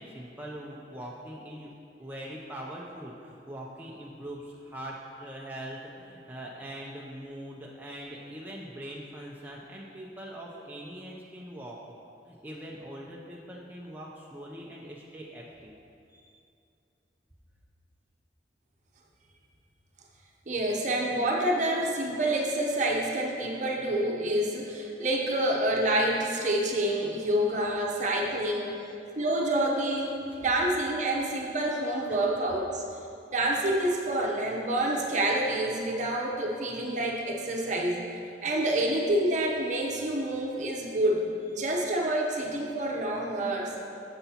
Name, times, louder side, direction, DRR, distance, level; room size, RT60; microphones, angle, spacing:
voice 1, 0.0-1.7 2.0-11.8 12.3-15.7 16.1-16.3 30.3-30.4 32.1-32.2, right 1 dB, 10° right, -3 dB, 0.5 m, -42 dB
voice 2, 20.5-28.8 29.2-32.8 33.3-38.0 38.4-43.7, right 1 dB, 45° right, -1 dB, 0.8 m, -28 dB
9.3 x 6.9 x 2.9 m, 2.6 s
head